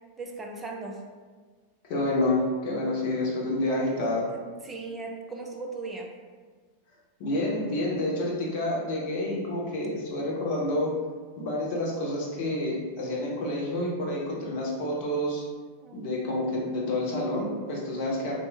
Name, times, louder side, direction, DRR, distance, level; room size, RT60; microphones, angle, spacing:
voice 1, 0.2-1.0 4.3-6.1 15.8-16.2, right 3 dB, 15° right, 0 dB, 0.4 m, -38 dB
voice 2, 1.9-4.3 7.2-11.0 11.4-15.4 15.9-18.3, left 1 dB, 45° left, -3 dB, 0.7 m, -28 dB
3.0 x 2.0 x 3.2 m, 1.5 s
figure-of-eight pair, 90°, 0 cm